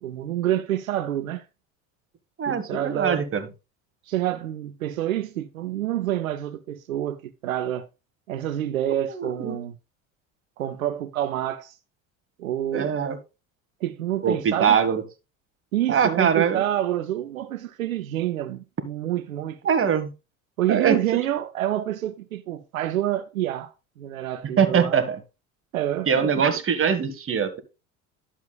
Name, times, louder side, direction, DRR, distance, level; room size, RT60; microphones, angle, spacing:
voice 1, 0.0-1.4 2.5-3.3 4.1-7.9 8.3-9.8 10.6-11.7 12.4-12.9 13.8-14.8 15.7-19.6 20.6-25.0 25.7-26.3, right 12 dB, 90° right, 0.6 m, -28 dB
voice 2, 2.4-3.4 9.1-9.6 12.7-13.2 14.2-15.0 15.9-16.6 19.6-20.1 20.7-21.0 24.6-25.2 26.1-27.6, right 7 dB, 30° right, 1.6 m, -22 dB
11.0 x 7.3 x 2.3 m
hypercardioid pair, 75°, 40 cm